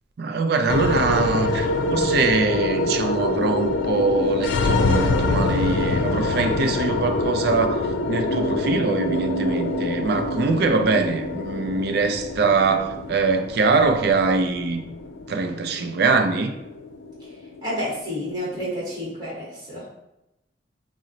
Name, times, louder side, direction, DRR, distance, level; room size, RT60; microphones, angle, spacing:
voice 1, 0.2-14.8 15.3-16.5, right 4 dB, 55° right, 0.4 m, -23 dB
sound 1, 0.7-19.1, left 2 dB, 85° left, 0.4 m, -25 dB
voice 2, 17.6-19.8, equal, 20° right, 1.2 m, -30 dB
4.1 x 2.1 x 3.7 m
head